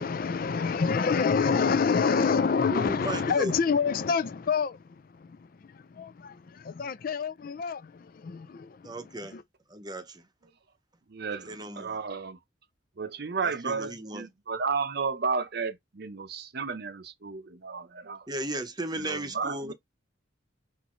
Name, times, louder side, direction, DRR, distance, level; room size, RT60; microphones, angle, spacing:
voice 1, 0.0-9.4, left 5 dB, 45° left, 0.4 m, -28 dB
voice 2, 2.7-3.5 8.8-9.4 9.7-10.2 11.4-12.0 13.4-14.3 18.3-19.7, right 1 dB, 20° right, 0.8 m, -35 dB
voice 3, 11.1-12.4 13.0-18.3 18.9-19.7, right 5 dB, 55° right, 0.7 m, -33 dB
6.2 x 2.6 x 3.0 m
head